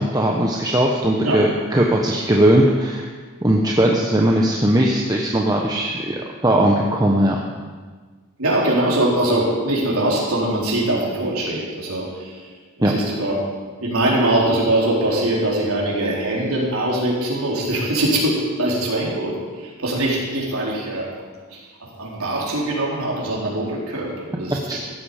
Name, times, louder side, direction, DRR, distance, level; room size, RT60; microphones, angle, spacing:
voice 1, 0.0-3.1 3.4-6.1 6.4-7.4 12.8-12.9 24.7-24.8, right 1 dB, 20° right, -1 dB, 1.0 m, -18 dB
voice 2, 8.4-12.4 12.8-13.4 13.8-21.1 21.5-24.8, right 1 dB, 90° right, -4 dB, 4.1 m, -22 dB
15.5 x 12.5 x 5.1 m, 1.5 s
head